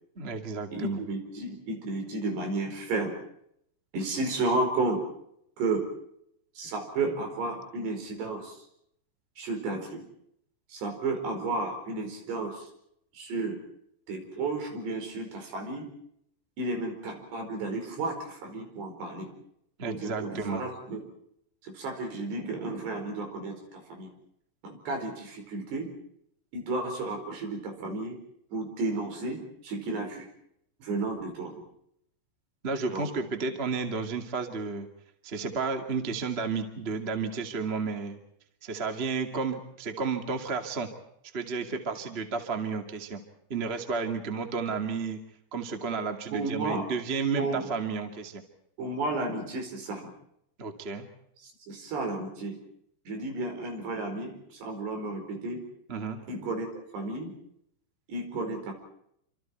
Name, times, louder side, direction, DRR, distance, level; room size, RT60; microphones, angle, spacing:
voice 1, 0.1-1.0 19.8-20.6 32.6-34.9 35.2-38.2 38.6-40.9 41.3-43.2 43.5-45.2 45.5-48.4 50.6-51.1 55.9-56.2, right 4 dB, 30° right, 5 dB, 1.1 m, -32 dB
voice 2, 0.7-3.2 3.9-5.0 5.6-5.8 6.6-8.6 9.4-10.1 10.7-12.7 13.1-13.6 14.1-15.9 16.6-19.3 19.9-21.0 21.6-24.1 24.6-25.9 26.5-28.2 28.5-30.3 30.8-31.6 32.9-33.1 46.3-46.9 47.4-47.7 48.8-50.1 51.4-52.6 53.1-55.6 56.3-56.7 56.9-57.3 58.1-58.7, right 2 dB, 65° right, 4 dB, 6.9 m, -32 dB
29.0 x 26.0 x 4.6 m, 0.74 s
omnidirectional pair, 5.2 m